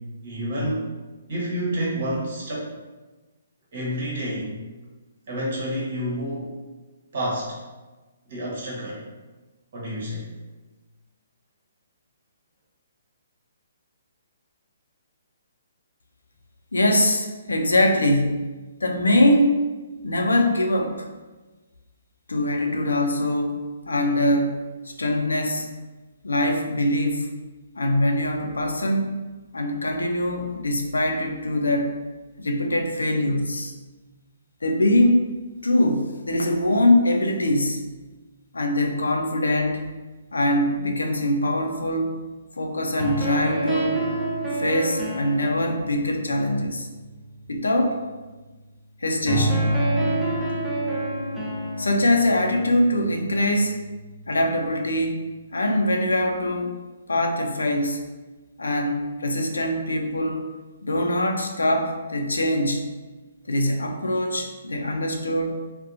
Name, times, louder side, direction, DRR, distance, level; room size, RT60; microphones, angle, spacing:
voice 1, 0.2-0.8 1.3-2.7 3.7-4.5 5.3-6.5 7.1-7.6 8.3-9.0 9.7-10.3, equal, 60° right, -5 dB, 1.0 m, -28 dB
voice 2, 16.7-18.5 18.8-19.6 20.0-21.1 22.3-24.6 25.0-25.7 26.2-27.3 27.7-29.2 29.5-31.9 32.4-33.7 34.6-35.4 35.6-37.9 38.5-39.9 40.3-42.2 42.6-43.9 44.6-46.9 47.5-48.0 49.0-49.8 51.8-53.8 54.3-55.2 55.5-56.8 57.1-58.0 58.6-60.5 60.8-62.8 63.5-65.6, left 1 dB, 90° left, 3 dB, 0.4 m, -23 dB
sound 1, 43.0-47.2 49.3-54.2, right 1 dB, 10° right, 0.5 m, -28 dB
2.7 x 2.1 x 2.5 m, 1.2 s
hypercardioid pair, 140°, 0 cm